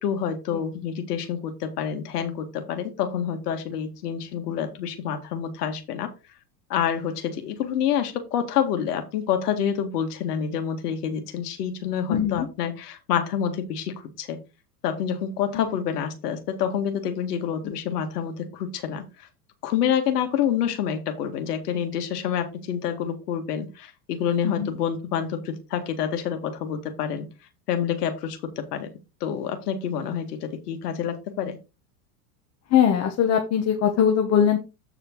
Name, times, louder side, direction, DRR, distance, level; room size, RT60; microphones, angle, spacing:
voice 1, 0.0-6.1 6.7-14.4 14.8-19.3 19.6-27.3 27.7-28.9 29.2-31.6, left 8 dB, 80° left, 7 dB, 1.9 m, -27 dB
voice 2, 12.1-12.5 15.5-15.7 17.6-17.8 24.4-24.7 32.7-34.6, left 8 dB, 35° left, 4 dB, 1.3 m, -21 dB
8.5 x 4.9 x 4.5 m, 0.28 s
supercardioid pair, 125°, 46 cm